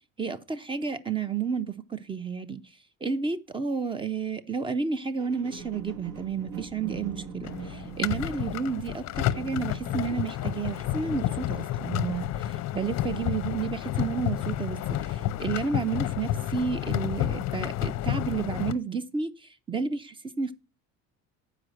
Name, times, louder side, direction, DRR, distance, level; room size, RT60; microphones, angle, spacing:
voice 1, 0.2-2.6 3.0-19.3 19.7-20.5, right 5 dB, 15° right, 0.5 m, -31 dB
sound 1, 5.2-12.6 13.2-13.3, right 6 dB, 70° right, 1.6 m, -43 dB
sound 2, 7.4-18.7, left 12 dB, 50° left, 0.6 m, -30 dB
7.4 x 5.0 x 6.6 m
cardioid pair, 130°, 35 cm